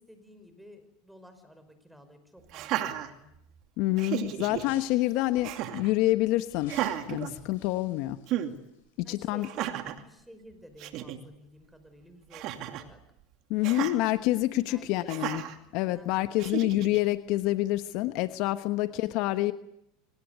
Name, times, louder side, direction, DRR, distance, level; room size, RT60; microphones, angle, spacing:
voice 1, 0.0-3.3 5.1-5.5 9.0-13.0 14.6-15.2 15.9-16.4 18.8-19.5, equal, ahead, 9 dB, 5.6 m, -53 dB
Laughter, 2.5-3.6 4.0-4.6 5.4-5.9 6.6-7.9 8.3-8.5 9.4-10.0 10.5-10.6 10.8-11.2 12.3-12.9 13.6-14.0 15.1-15.6 16.4-17.0, right 12 dB, 55° right, 2.6 m, -33 dB
voice 2, 3.8-6.7 7.1-8.2 9.0-9.5 13.5-15.4 15.7-19.5, left 17 dB, 60° left, 11 dB, 1.1 m, -27 dB
sound 1, 4.5-5.6 6.5-8.9 9.2-9.3, left 7 dB, 80° left, 7.9 m, -53 dB
25.0 x 19.0 x 9.6 m, 0.77 s
hypercardioid pair, 100°, 0 cm